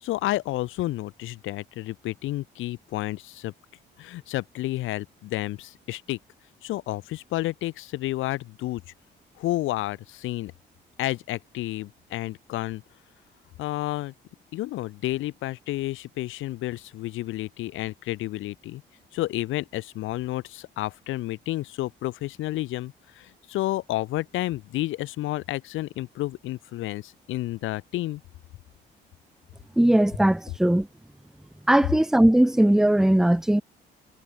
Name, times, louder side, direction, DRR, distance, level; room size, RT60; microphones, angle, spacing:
voice 1, 0.0-3.5 4.0-6.2 6.6-8.8 9.4-10.5 11.0-12.8 13.6-14.1 14.5-18.8 19.1-28.2, left 16 dB, 85° left, 0.8 m, -31 dB
voice 2, 29.8-30.9 31.7-33.6, right 1 dB, ahead, 0.6 m, -19 dB
cardioid pair, 90°, 20 cm